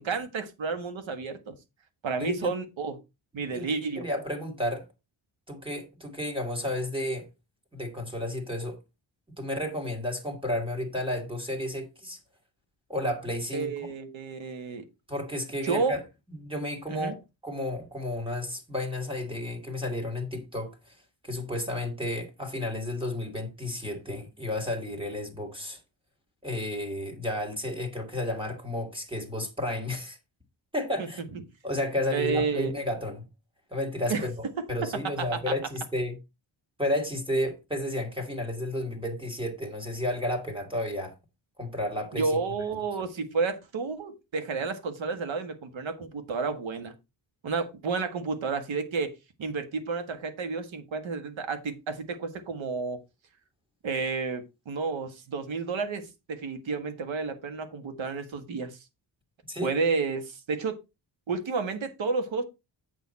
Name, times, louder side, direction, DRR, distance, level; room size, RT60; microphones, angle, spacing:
voice 1, 0.0-1.5 2.0-3.0 3.3-4.1 13.5-14.8 15.6-15.9 16.9-17.1 31.0-31.1 32.1-32.7 34.1-34.3 34.9-35.5 42.1-46.9 47.4-49.1 49.4-53.0 53.8-58.8 59.6-60.8 61.3-62.4, right 4 dB, 80° right, 1.7 m, -31 dB
voice 2, 2.2-2.5 3.5-4.9 5.5-7.3 7.7-8.8 9.4-12.2 12.9-13.9 15.1-16.0 16.3-17.2 17.4-20.9 21.2-25.8 26.4-30.2 30.7-31.2 31.6-33.2 33.7-36.2 36.8-41.1 41.6-42.4 59.5-59.7, left 1 dB, 10° right, 1.9 m, -32 dB
8.1 x 6.6 x 4.2 m
wide cardioid pair, 160°, 46 cm